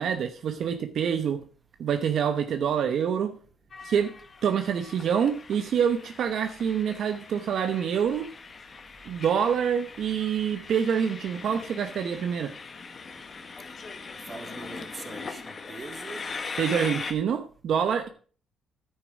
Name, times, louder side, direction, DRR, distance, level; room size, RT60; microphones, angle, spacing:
voice 1, 0.0-1.4 1.8-3.4 3.8-4.1 4.4-8.3 9.0-12.5 16.6-18.1, right 7 dB, 65° right, 1.0 m, -26 dB
Train, 3.7-17.1, left 4 dB, 40° left, 1.6 m, -41 dB
voice 2, 14.3-16.2, right 3 dB, 30° right, 1.7 m, -42 dB
10.0 x 9.2 x 4.8 m
cardioid pair, 90°, 0 cm